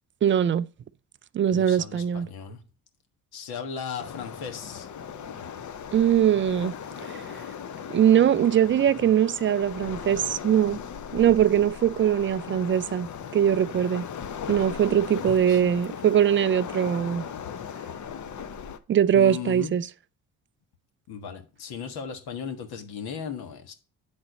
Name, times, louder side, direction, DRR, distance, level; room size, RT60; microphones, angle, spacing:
voice 1, 0.2-0.6 1.3-2.3 5.9-6.7 7.1-7.2 7.9-10.8 11.1-14.1 14.5-17.3 18.9-19.9, right 9 dB, 30° right, 0.4 m, -21 dB
voice 2, 1.5-2.6 3.3-4.9 15.1-15.6 19.1-19.7 21.1-23.7, left 7 dB, 65° left, 1.5 m, -36 dB
Waves surf, 4.0-18.8, left 7 dB, 45° left, 0.8 m, -38 dB
8.6 x 4.0 x 5.2 m
hypercardioid pair, 60°, 40 cm